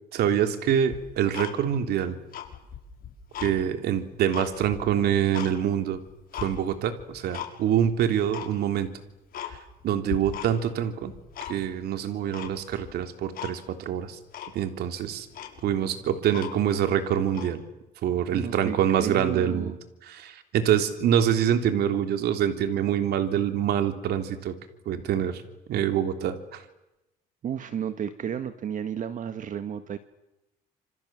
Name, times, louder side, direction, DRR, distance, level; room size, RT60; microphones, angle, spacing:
voice 1, 0.1-2.2 3.4-6.0 6.4-8.9 9.4-9.6 9.8-11.1 11.5-14.2 14.5-15.3 15.6-17.6 18.0-19.8 20.0-24.6 24.9-25.4 25.7-26.6, right 9 dB, 70° right, 8 dB, 3.4 m, -25 dB
Tick-tock, 0.9-1.9 2.2-3.6 4.0-5.5 5.9-6.5 7.0-7.5 7.8-7.9 8.3-8.5 8.9-9.0 9.3-9.8 10.1-10.7 11.0-11.8 12.3-12.9 13.3-13.5 13.9-14.0 14.3-14.6 15.0-15.1 15.3-16.8 17.3-17.5, left 10 dB, 60° left, 6.4 m, -38 dB
voice 2, 18.3-19.7 27.4-30.0, right 8 dB, 50° right, 10 dB, 1.7 m, -32 dB
28.0 x 27.5 x 7.6 m, 0.93 s
cardioid pair, 110°, 17 cm